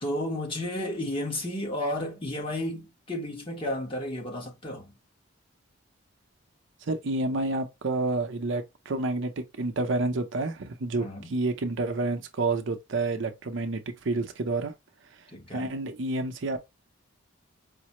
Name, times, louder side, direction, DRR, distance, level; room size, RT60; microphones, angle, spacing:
voice 1, 0.0-4.9 10.9-11.3 15.3-15.7, left 1 dB, 25° left, 1.0 m, -32 dB
voice 2, 6.9-14.7 15.5-16.6, right 2 dB, 65° right, 0.6 m, -29 dB
4.9 x 2.0 x 2.9 m
head